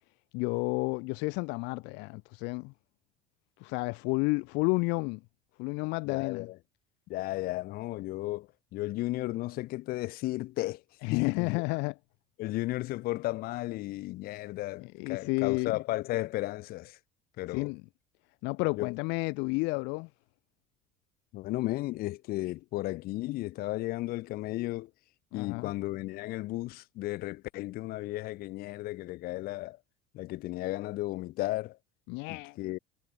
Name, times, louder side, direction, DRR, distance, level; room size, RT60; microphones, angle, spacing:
voice 1, 0.3-2.7 3.6-5.2 5.6-6.5 11.0-12.0 14.8-15.7 17.5-17.8 18.4-20.1 25.3-25.7 32.1-32.6, left 28 dB, 70° left, 2.6 m, -31 dB
voice 2, 6.1-6.6 7.1-10.8 11.1-11.6 12.4-17.0 17.4-17.7 18.8-18.9 21.3-24.9 25.3-29.8 30.1-31.8 32.3-32.8, left 18 dB, 50° left, 4.2 m, -34 dB
cardioid pair, 170°, 19 cm